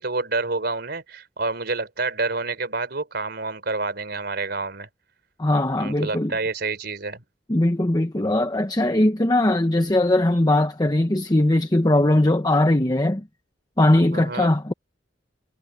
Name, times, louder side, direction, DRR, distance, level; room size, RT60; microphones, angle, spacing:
voice 1, 0.0-4.9 5.8-7.2 14.1-14.5, right 3 dB, 60° right, 3.9 m, -28 dB
voice 2, 5.4-6.3 7.5-13.2 13.8-14.7, left 1 dB, 20° left, 1.0 m, -20 dB
head